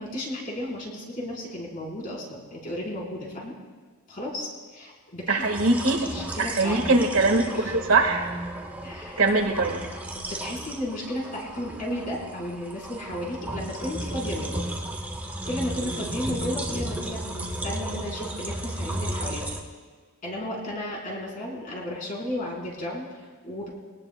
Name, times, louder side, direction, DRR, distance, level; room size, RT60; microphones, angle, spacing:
voice 1, 0.0-3.5 4.1-5.4 5.9-7.0 7.6-7.7 8.8-9.3 10.1-14.7 15.4-19.5 20.2-23.7, left 1 dB, 40° left, -3 dB, 4.0 m, -34 dB
voice 2, 5.3-6.1 6.4-8.3 9.2-9.9, right 3 dB, 70° right, 3 dB, 1.6 m, -22 dB
sound 1, 5.4-19.6, right 1 dB, 10° right, 1.3 m, -34 dB
23.5 x 18.5 x 2.2 m, 1.5 s
head